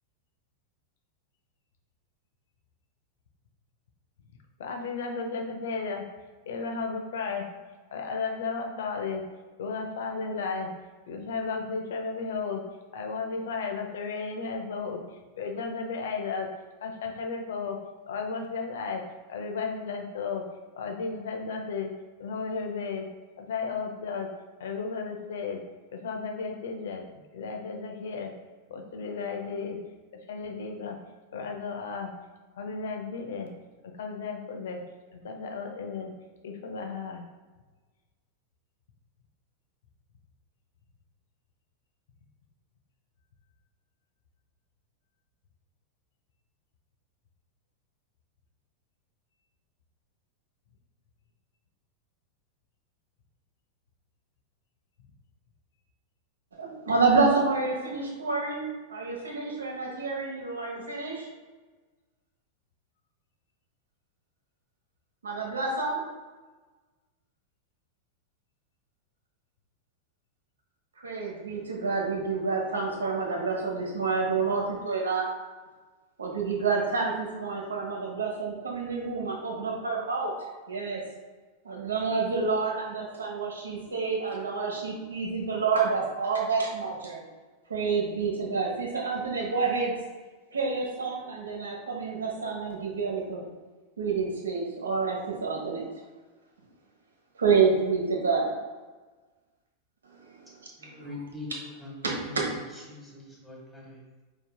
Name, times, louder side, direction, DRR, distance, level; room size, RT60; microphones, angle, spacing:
voice 1, 4.6-6.0 6.5-7.5 7.9-9.2 9.6-10.7 11.1-12.6 12.9-15.0 15.4-16.5 16.8-17.8 18.1-19.0 19.3-20.4 20.8-21.9 22.2-23.1 23.4-24.3 24.6-25.6 25.9-27.0 27.3-28.3 28.7-29.8 30.3-31.0 31.3-32.1 32.6-33.5 34.0-34.8 35.1-36.1 36.4-37.2, left 4 dB, 60° left, 3 dB, 0.7 m, -34 dB
voice 2, 56.5-61.3 65.2-66.0 71.0-75.3 76.2-80.3 80.7-81.0 81.6-87.2 87.7-89.9 90.5-93.4 94.0-95.8 97.3-98.5 100.2-101.1 102.0-102.4, right 4 dB, 70° right, -1 dB, 1.2 m, -28 dB
voice 3, 100.8-101.5 101.8-101.9 102.2-102.4 102.7-104.2, left 3 dB, ahead, -4 dB, 1.5 m, -43 dB
5.2 x 4.1 x 2.2 m, 1.3 s
figure-of-eight pair, 90°, 0 cm